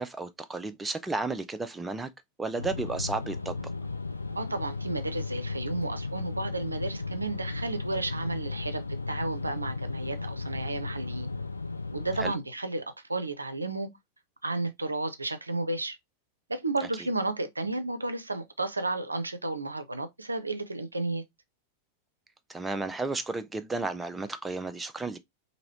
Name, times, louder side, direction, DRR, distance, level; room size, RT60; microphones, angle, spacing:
voice 1, 0.0-2.1 2.4-3.6 12.2-12.3 22.5-25.2, right 3 dB, 10° right, 0.4 m, -33 dB
sound 1, 2.6-12.3, left 3 dB, 80° left, 0.3 m, -35 dB
voice 2, 4.4-11.3 11.9-12.8 13.1-13.9 14.4-16.0 16.5-21.2, right 2 dB, 80° right, 0.4 m, -32 dB
2.9 x 2.7 x 2.8 m
figure-of-eight pair, 90°, 0 cm